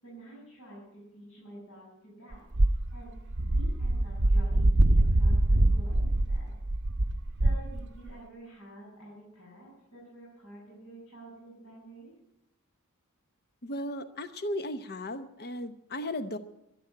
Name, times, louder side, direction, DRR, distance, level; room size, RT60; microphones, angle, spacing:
voice 1, 0.0-2.4 2.9-6.6 7.4-12.1, right 1 dB, 80° left, -7 dB, 7.4 m, -49 dB
sound 1, 2.3-8.1, right 1 dB, 55° right, 0.9 m, -24 dB
voice 2, 13.6-16.4, left 1 dB, 45° left, 11 dB, 0.8 m, -35 dB
12.0 x 12.0 x 9.7 m, 0.83 s
head